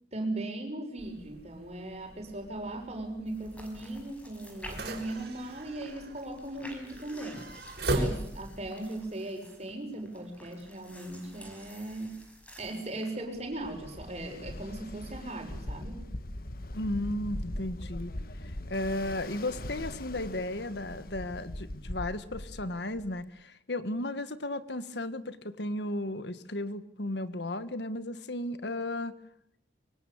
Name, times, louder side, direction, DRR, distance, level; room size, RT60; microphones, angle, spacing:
voice 1, 0.1-7.5 7.9-12.2 12.6-16.0, right 1 dB, 35° right, 3 dB, 6.6 m, -38 dB
sound 1, 1.0-8.7, right 1 dB, 65° right, 5.6 m, -38 dB
sound 2, 3.3-13.1, equal, 10° left, 5.5 m, -52 dB
Ocean, 13.4-23.2, left 1 dB, 55° left, 1.4 m, -41 dB
voice 2, 16.7-18.1 18.4-29.1, left 1 dB, 75° left, 13 dB, 1.6 m, -34 dB
25.5 x 24.0 x 8.7 m, 0.73 s
head